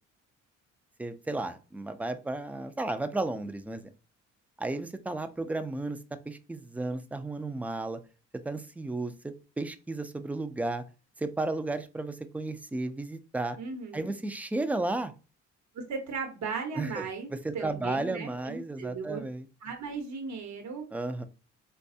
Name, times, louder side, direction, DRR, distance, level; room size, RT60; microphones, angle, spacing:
voice 1, 1.0-3.8 4.6-6.0 6.3-8.0 8.4-10.8 11.2-13.6 13.9-15.1 16.8-17.0 17.3-19.5 20.9-21.2, right 2 dB, 5° right, 10 dB, 0.3 m, -33 dB
voice 2, 13.6-14.1 15.7-19.2 19.6-20.8, right 5 dB, 65° right, 3 dB, 1.0 m, -37 dB
4.0 x 2.3 x 2.6 m, 0.34 s
cardioid pair, 90°, 30 cm